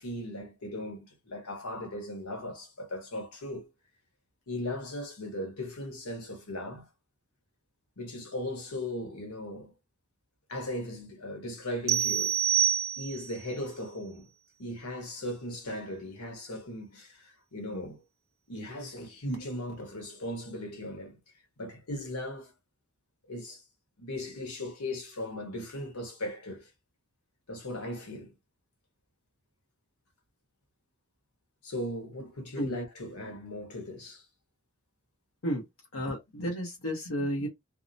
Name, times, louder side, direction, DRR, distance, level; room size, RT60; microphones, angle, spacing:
voice 1, 0.0-3.7 4.5-6.9 8.0-9.7 10.5-12.4 13.0-14.3 14.6-18.0 18.5-21.2 21.6-22.5 23.3-23.6 24.0-26.7 27.5-28.3 31.6-34.3, left 1 dB, 90° left, 1.1 m, -38 dB
sound 1, 11.9-13.4, right 10 dB, 45° right, 0.3 m, -26 dB
voice 2, 35.9-37.5, equal, 70° left, 0.9 m, -32 dB
2.7 x 2.0 x 2.6 m
head